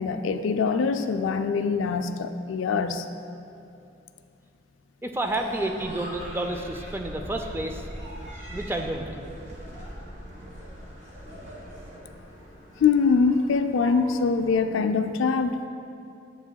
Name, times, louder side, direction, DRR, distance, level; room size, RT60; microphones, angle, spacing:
voice 1, 0.0-3.1 12.8-15.6, left 5 dB, 80° left, 9 dB, 0.4 m, -23 dB
voice 2, 5.0-7.8 8.5-9.1, right 1 dB, 10° right, 4 dB, 0.4 m, -30 dB
sound 1, 5.2-14.6, equal, 40° right, 1.6 m, -41 dB
9.9 x 7.6 x 2.3 m, 2.6 s
head